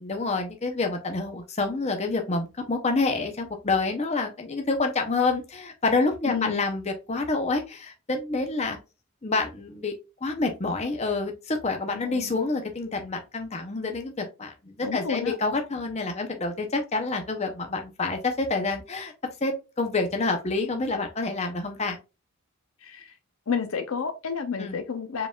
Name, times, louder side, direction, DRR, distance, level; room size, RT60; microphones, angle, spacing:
voice 1, 0.0-8.8 9.2-9.9 10.2-19.1 19.4-22.0 24.6-24.8, left 3 dB, 30° left, 0.7 m, -28 dB
voice 2, 6.2-6.6 11.9-12.4 14.8-15.4 22.8-23.1 23.5-25.3, left 6 dB, 75° left, 0.7 m, -30 dB
4.6 x 3.6 x 2.3 m
head